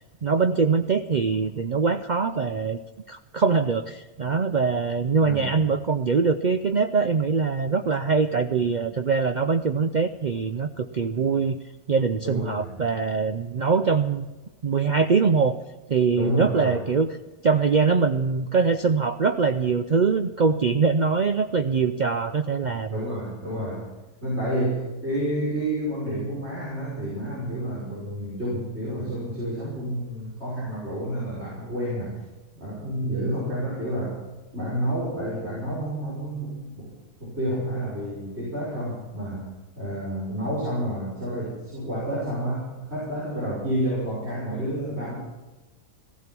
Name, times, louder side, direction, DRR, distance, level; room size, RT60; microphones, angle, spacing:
voice 1, 0.0-2.8 3.1-11.6 11.9-14.3 14.6-15.6 15.9-17.1 17.4-23.0, right 5 dB, 75° right, 7 dB, 0.4 m, -23 dB
voice 2, 5.2-5.5 12.2-12.8 16.2-16.8 22.9-23.9 24.2-32.2 32.5-34.2 34.5-36.9 37.2-45.2, right 1 dB, 45° right, -8 dB, 6.1 m, -29 dB
16.0 x 15.0 x 6.1 m, 1.1 s
omnidirectional pair, 1.5 m